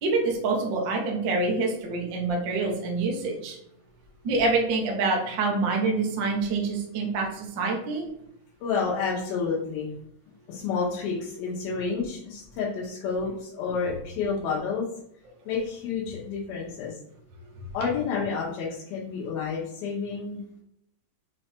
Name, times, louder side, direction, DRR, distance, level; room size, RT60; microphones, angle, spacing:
voice 1, 0.0-3.6 4.2-8.0, right 3 dB, 60° right, 0 dB, 1.1 m, -26 dB
voice 2, 8.6-9.9 10.5-14.9 15.5-16.9 17.7-20.4, left 5 dB, 85° left, -5 dB, 3.0 m, -30 dB
7.1 x 3.3 x 4.5 m, 0.72 s
omnidirectional pair, 4.1 m